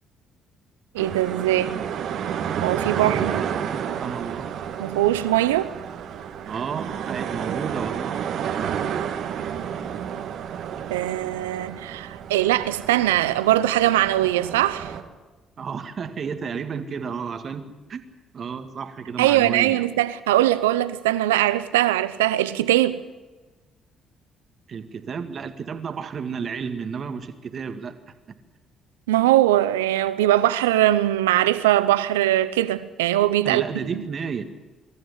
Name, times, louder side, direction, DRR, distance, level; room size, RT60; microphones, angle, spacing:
voice 1, 0.9-1.8 2.6-3.3 4.8-5.7 10.9-14.9 19.2-23.0 29.1-33.6 33.9-34.0, right 14 dB, 90° right, 0.8 m, -21 dB
sound 1, 1.0-15.0, right 8 dB, 65° right, 1.9 m, -31 dB
voice 2, 2.9-4.5 6.5-8.2 15.6-18.0 18.3-19.9 24.7-28.0 33.4-34.4, right 6 dB, 50° right, 2.0 m, -32 dB
23.5 x 14.0 x 10.0 m
hypercardioid pair, 50°, 0 cm